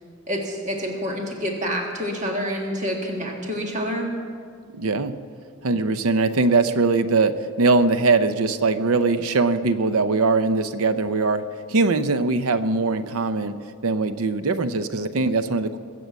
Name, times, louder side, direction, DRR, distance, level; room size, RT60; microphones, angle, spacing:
voice 1, 0.3-4.1, equal, 35° right, 1 dB, 1.8 m, -27 dB
voice 2, 4.7-5.1 5.6-11.4 11.7-13.6 13.8-15.8, right 3 dB, 75° right, 11 dB, 0.6 m, -21 dB
22.0 x 7.8 x 8.2 m, 2.1 s
head